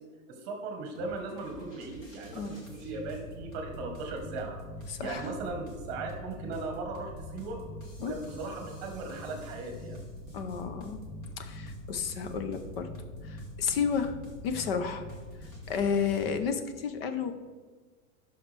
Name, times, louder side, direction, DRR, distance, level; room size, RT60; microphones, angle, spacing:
voice 1, 0.3-4.6 5.0-7.6 8.0-10.0, right 3 dB, 30° right, 3 dB, 1.2 m, -38 dB
sound 1, 1.0-16.4, left 1 dB, 15° left, 0.5 m, -44 dB
voice 2, 4.9-5.3 8.0-8.1 10.3-11.0 11.4-12.9 13.2-14.2 14.4-15.1 15.7-17.3, left 6 dB, 45° left, 9 dB, 0.8 m, -31 dB
12.0 x 5.7 x 3.4 m, 1.4 s
supercardioid pair, 175°, 40 cm